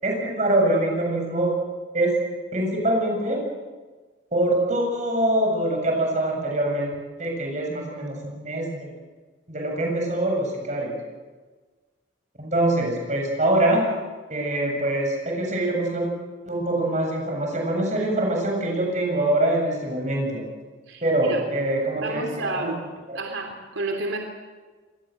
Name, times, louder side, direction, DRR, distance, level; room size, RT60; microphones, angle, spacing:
voice 1, 0.0-1.5 1.9-2.1 2.5-3.4 4.3-6.9 7.2-8.9 9.5-11.0 12.4-13.9 14.3-16.1 16.4-20.4 21.0-22.7 23.1-23.2, right 1 dB, 40° right, 1 dB, 7.5 m, -24 dB
voice 2, 20.9-21.4 22.0-22.8 23.2-24.2, right 2 dB, 85° right, 3 dB, 3.3 m, -30 dB
27.0 x 20.0 x 7.9 m, 1.3 s
head